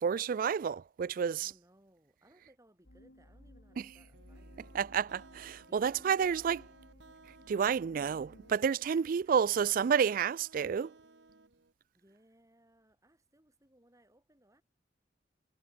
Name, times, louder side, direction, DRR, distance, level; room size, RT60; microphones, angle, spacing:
voice 1, 0.0-1.5 3.8-3.9 4.7-6.6 7.5-10.9, right 7 dB, 50° right, 0.3 m, -30 dB
voice 2, 1.3-4.8 5.7-6.7 8.9-9.6 11.9-14.6, right 1 dB, 20° right, 7.1 m, -65 dB
sound 1, 2.8-8.6, left 1 dB, 80° left, 4.9 m, -57 dB
sound 2, 4.1-11.7, right 3 dB, 80° right, 1.8 m, -59 dB
head